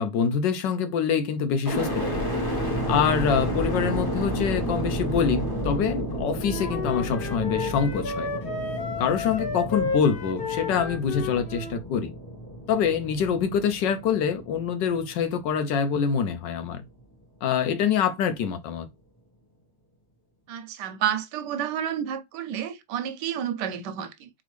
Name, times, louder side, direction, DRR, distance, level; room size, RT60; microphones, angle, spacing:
voice 1, 0.0-2.2 2.9-8.3 9.0-12.1 12.7-16.8 17.4-18.9, left 7 dB, 70° left, 1.3 m, -25 dB
sound 1, 1.6-15.7 16.2-16.9, equal, 15° left, 0.8 m, -31 dB
Wind instrument woodwind instrument, 6.4-11.8, left 4 dB, 50° left, 0.6 m, -32 dB
voice 2, 20.5-24.3, right 9 dB, 75° right, 1.1 m, -30 dB
3.8 x 3.5 x 3.2 m
omnidirectional pair, 2.1 m